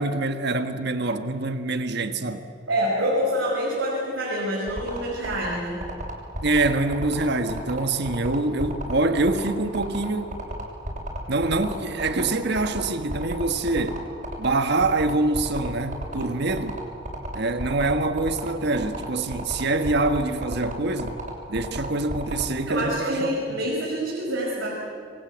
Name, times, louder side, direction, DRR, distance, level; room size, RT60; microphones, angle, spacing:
voice 1, 0.0-2.4 6.4-10.4 11.3-14.0 14.4-16.8 17.3-21.2 21.5-23.3, right 2 dB, 60° right, 8 dB, 1.5 m, -25 dB
voice 2, 2.7-5.8 22.7-24.7, equal, 80° right, -4 dB, 5.9 m, -26 dB
sound 1, 4.7-22.4, right 1 dB, 45° right, 6.6 m, -32 dB
28.5 x 23.0 x 8.2 m, 2.5 s
head